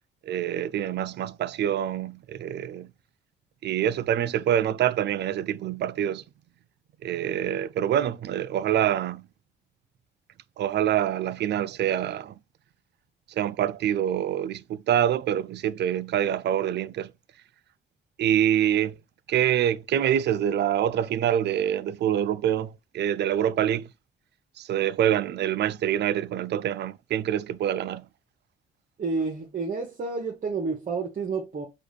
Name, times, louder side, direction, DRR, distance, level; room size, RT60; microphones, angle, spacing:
voice 1, 0.2-2.9 3.6-6.2 7.0-9.3 10.6-12.4 13.3-17.1 18.2-19.0 19.3-23.9 24.6-28.1, right 10 dB, 60° right, 0.4 m, -26 dB
voice 2, 29.0-31.7, right 4 dB, 40° right, 1.0 m, -30 dB
4.9 x 2.4 x 3.2 m
cardioid pair, 90°, 20 cm